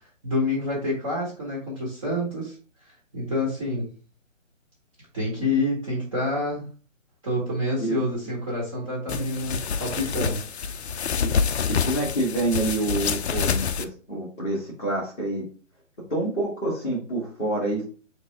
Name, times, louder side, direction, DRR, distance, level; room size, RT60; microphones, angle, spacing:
voice 1, 0.2-2.5 3.1-3.9 5.1-6.6 7.2-10.9, left 1 dB, 25° right, -4 dB, 1.2 m, -27 dB
sound 1, 9.1-13.8, left 6 dB, 55° left, 0.5 m, -27 dB
voice 2, 11.8-15.4 16.1-17.8, right 2 dB, 5° left, -19 dB, 0.6 m, -27 dB
4.1 x 3.2 x 3.4 m, 0.37 s
hypercardioid pair, 165°, 39 cm